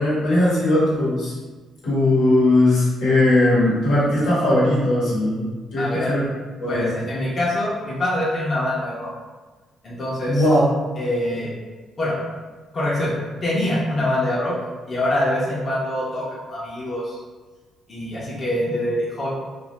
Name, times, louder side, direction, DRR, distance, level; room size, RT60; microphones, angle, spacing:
voice 1, 0.0-1.3 1.8-5.5 5.7-6.2 6.6-6.9 10.2-10.6, left 1 dB, 85° left, -7 dB, 1.1 m, -19 dB
voice 2, 5.8-6.2 6.7-9.1 9.8-10.4 11.0-11.5 12.0-12.2 12.7-13.1 13.4-14.5 14.9-17.2 17.9-19.3, left 1 dB, 35° left, -7 dB, 0.7 m, -24 dB
2.4 x 2.0 x 3.0 m, 1.3 s
cardioid pair, 90°, 0 cm